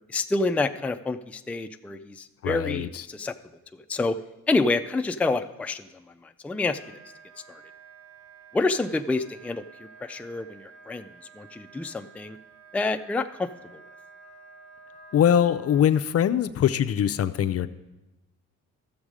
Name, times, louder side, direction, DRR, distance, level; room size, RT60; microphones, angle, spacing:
voice 1, 0.1-3.3 3.9-4.2 4.5-5.9 6.4-7.0 7.5-7.6 8.5-9.6 10.0-11.1 11.4-12.4 12.7-13.8, left 3 dB, 5° left, 8 dB, 0.4 m, -28 dB
voice 2, 2.4-3.0 15.1-17.7, left 9 dB, 55° left, 12 dB, 0.5 m, -22 dB
Wind instrument woodwind instrument, 6.7-15.9, right 5 dB, 65° right, 3.3 m, -51 dB
13.0 x 7.2 x 4.9 m, 1.0 s
cardioid pair, 90°, 30 cm